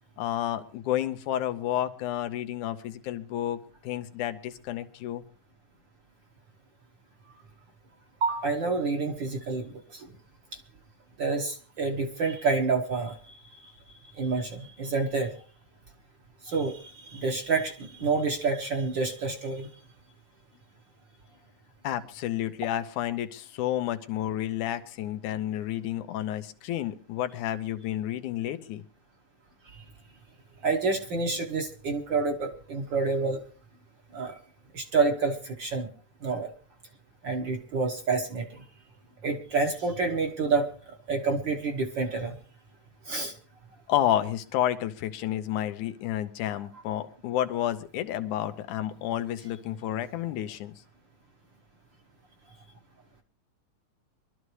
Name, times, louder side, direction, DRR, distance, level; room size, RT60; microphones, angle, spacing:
voice 1, 0.2-5.2 21.8-28.8 43.9-50.7, left 12 dB, 85° left, 10 dB, 2.4 m, -30 dB
voice 2, 8.2-10.1 11.2-13.4 14.1-15.3 16.4-19.7 29.7-29.8 30.6-33.4 34.1-34.3 34.7-35.9 36.2-36.5 37.2-38.6 39.2-40.7 41.1-42.3 43.1-43.3, right 4 dB, 50° right, 3 dB, 1.5 m, -28 dB
24.0 x 12.5 x 3.2 m, 0.38 s
omnidirectional pair, 3.4 m